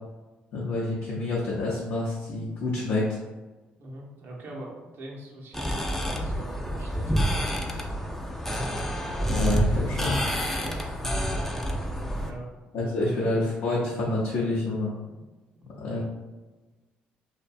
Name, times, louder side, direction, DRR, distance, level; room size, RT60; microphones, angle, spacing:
voice 1, 0.5-3.2 9.3-10.2 12.7-14.9 15.8-16.0, left 2 dB, 70° left, -6 dB, 0.5 m, -28 dB
voice 2, 3.8-7.1 10.6-10.8 12.1-13.1 15.6-16.0, right 1 dB, 60° right, -2 dB, 0.6 m, -42 dB
sound 1, 5.5-12.3, equal, 5° left, 0.4 m, -28 dB
2.5 x 2.1 x 2.4 m, 1.2 s
supercardioid pair, 60°, 4 cm